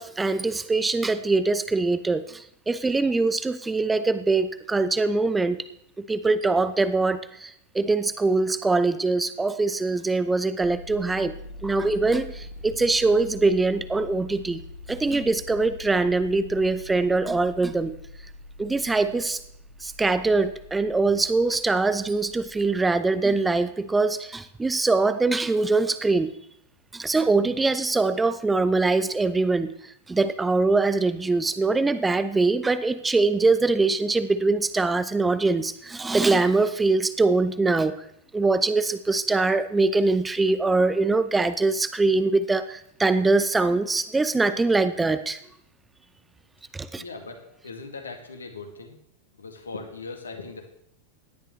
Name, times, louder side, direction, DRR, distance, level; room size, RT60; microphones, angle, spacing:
voice 1, 0.0-5.6 6.0-11.3 11.6-14.6 14.9-17.9 18.6-19.4 19.8-26.3 26.9-38.0 38.3-45.4 46.7-47.0, right 3 dB, 10° right, 12 dB, 0.7 m, -23 dB
sound 1, 10.6-23.3, left 2 dB, 40° left, 2.3 m, -44 dB
voice 2, 47.0-49.0 49.4-50.7, left 3 dB, 75° left, 3 dB, 2.1 m, -39 dB
17.5 x 11.5 x 3.2 m, 0.71 s
figure-of-eight pair, 90°, 0 cm